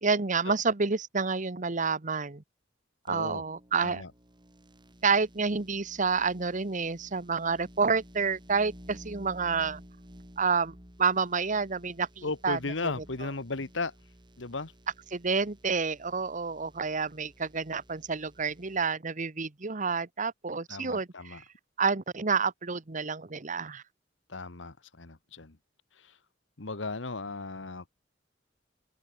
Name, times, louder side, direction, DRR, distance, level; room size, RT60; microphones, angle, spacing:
voice 1, 0.0-2.4 3.1-4.0 5.0-9.8 10.4-13.3 15.1-21.4 21.8-23.8, right 5 dB, 40° right, 1.1 m, -29 dB
voice 2, 3.1-3.4 3.8-4.1 12.2-13.9 14.4-14.7 20.7-21.4 24.3-25.6 26.6-27.8, left 3 dB, 80° left, 1.5 m, -35 dB
sound 1, 3.1-18.9, equal, 25° right, 4.8 m, -53 dB
head